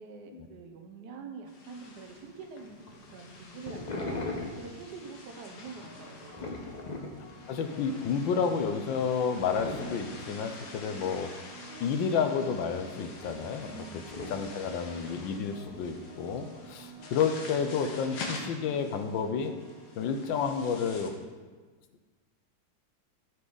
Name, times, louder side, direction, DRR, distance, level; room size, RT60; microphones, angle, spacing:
voice 1, 0.0-6.7 13.6-15.0 16.9-17.2, right 5 dB, 65° right, 4 dB, 1.4 m, -46 dB
sound 1, 1.5-21.1, left 3 dB, 60° left, 1.6 m, -47 dB
sound 2, 1.8-16.9, left 2 dB, 30° left, 0.8 m, -43 dB
sound 3, 5.8-20.6, right 1 dB, 5° right, 2.8 m, -52 dB
voice 2, 7.5-11.3 11.8-13.8 14.3-19.5 20.0-21.1, left 6 dB, 80° left, 7 dB, 1.4 m, -30 dB
13.5 x 5.5 x 3.9 m, 1.4 s
omnidirectional pair, 2.1 m